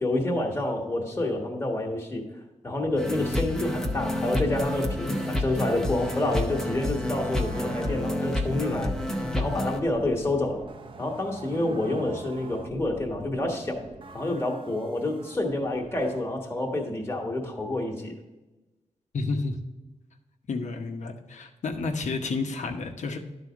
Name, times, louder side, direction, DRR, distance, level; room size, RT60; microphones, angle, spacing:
voice 1, 0.0-2.2 2.6-8.9 9.3-10.7 11.0-13.8 14.1-18.1, left 2 dB, 20° left, 0 dB, 1.3 m, -28 dB
sound 1, 2.8-16.2, right 3 dB, 45° right, 0.6 m, -42 dB
sound 2, 3.0-9.8, left 1 dB, 5° left, 0.7 m, -29 dB
voice 2, 19.1-19.5 20.5-23.2, left 3 dB, 70° left, 5 dB, 0.9 m, -30 dB
11.0 x 4.1 x 4.9 m, 1.1 s
wide cardioid pair, 145°, 12 cm